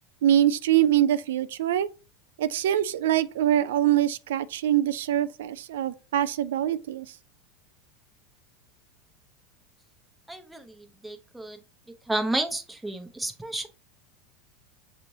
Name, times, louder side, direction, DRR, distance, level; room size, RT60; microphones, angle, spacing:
voice 1, 0.2-1.9 2.4-7.1, right 11 dB, 90° right, 0.3 m, -24 dB
voice 2, 10.3-11.6 12.1-13.7, right 1 dB, 5° right, 0.6 m, -31 dB
6.5 x 3.1 x 2.6 m
supercardioid pair, 135°, 0 cm